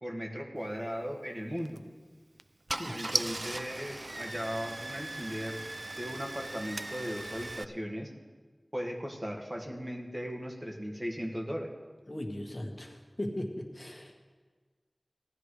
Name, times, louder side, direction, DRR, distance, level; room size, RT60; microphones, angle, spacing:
voice 1, 0.0-1.8 2.9-5.7 6.0-8.1 8.7-11.7, equal, 30° right, 0 dB, 1.9 m, -37 dB
Car / Engine starting, 1.6-1.8 2.4-2.5 2.7-7.6, right 2 dB, 55° right, 0.4 m, -38 dB
voice 2, 12.1-14.2, left 1 dB, 40° left, 1 dB, 1.5 m, -38 dB
18.0 x 12.0 x 3.3 m, 1.4 s
wide cardioid pair, 45°, 0 cm